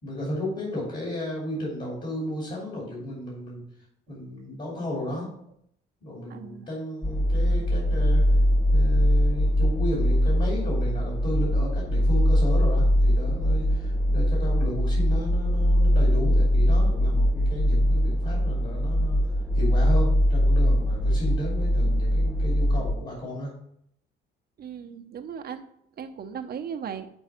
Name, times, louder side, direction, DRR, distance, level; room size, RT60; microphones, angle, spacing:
voice 1, 0.0-3.6 4.1-5.3 6.0-8.2 8.7-19.2 19.5-23.5, equal, 45° left, -4 dB, 2.9 m, -33 dB
voice 2, 6.3-6.7 24.6-25.6 26.0-27.1, right 7 dB, 50° right, 6 dB, 0.8 m, -37 dB
sound 1, 7.0-22.9, equal, 5° left, 0.3 m, -22 dB
6.2 x 4.6 x 5.8 m, 0.71 s
cardioid pair, 90°, 20 cm